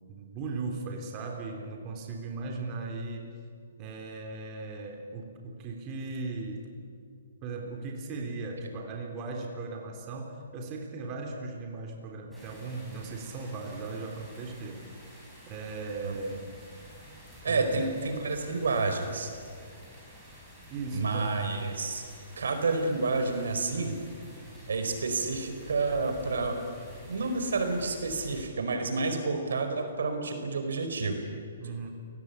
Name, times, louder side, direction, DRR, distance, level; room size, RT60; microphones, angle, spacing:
voice 1, 0.1-3.3 3.8-6.7 7.4-14.8 15.5-16.4 17.4-18.0 20.7-21.4 31.6-31.9, right 3 dB, 25° right, 2 dB, 3.6 m, -37 dB
sound 1, 12.3-28.4, equal, ahead, 7.5 m, -50 dB
voice 2, 17.4-19.3 20.9-22.0 22.4-23.9 24.7-26.6 27.1-31.2, right 3 dB, 85° right, 6 dB, 4.7 m, -29 dB
30.0 x 18.5 x 8.5 m, 2.2 s
hypercardioid pair, 155°, 0 cm